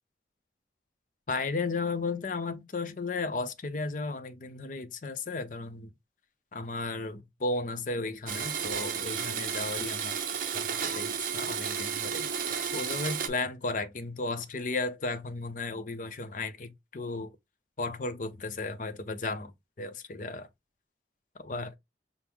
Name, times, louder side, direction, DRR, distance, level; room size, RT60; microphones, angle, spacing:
voice 1, 1.3-5.9 6.5-10.2 10.5-17.3 17.8-19.5 19.8-20.5 21.4-21.7, left 3 dB, 45° left, 0.6 m, -34 dB
Domestic sounds home sounds, 8.3-13.3, right 7 dB, 50° right, 0.6 m, -32 dB
5.9 x 2.0 x 3.5 m
head